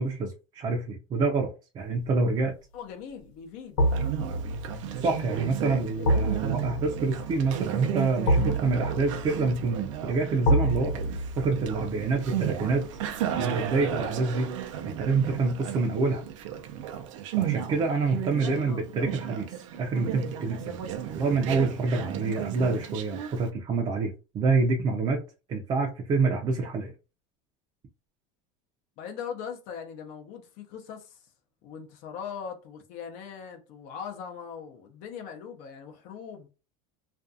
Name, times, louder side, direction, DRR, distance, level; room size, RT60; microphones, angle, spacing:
voice 1, 0.0-2.5 5.0-11.0 11.4-13.0 13.3-14.5 14.8-16.2 17.4-20.8 21.1-25.2 25.5-26.9, right 3 dB, 30° right, 0.5 m, -27 dB
sound 1, 2.0-2.4 3.8-14.8 15.1-15.2, right 1 dB, 75° left, 0.9 m, -30 dB
voice 2, 2.7-4.2 5.6-6.5 18.4-18.8 29.0-31.3 31.6-36.5, left 7 dB, 55° left, 0.6 m, -41 dB
Conversation, 3.8-23.5, right 10 dB, 85° right, 0.5 m, -34 dB
2.5 x 2.3 x 2.6 m
supercardioid pair, 135°, 16 cm